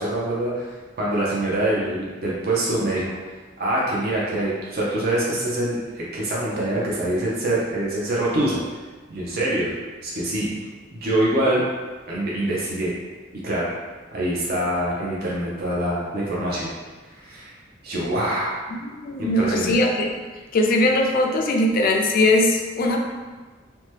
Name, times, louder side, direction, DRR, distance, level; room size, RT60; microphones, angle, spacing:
voice 1, 0.0-3.1 3.6-8.6 9.1-9.7 10.0-10.5 10.9-11.6 12.1-12.9 13.4-13.7 14.1-16.7 17.2-17.5 17.8-18.5 19.2-19.7, right 1 dB, 55° right, -6 dB, 0.7 m, -24 dB
voice 2, 18.8-20.1 20.5-23.0, left 1 dB, 50° left, 2 dB, 0.4 m, -20 dB
2.8 x 2.2 x 3.2 m, 1.3 s
head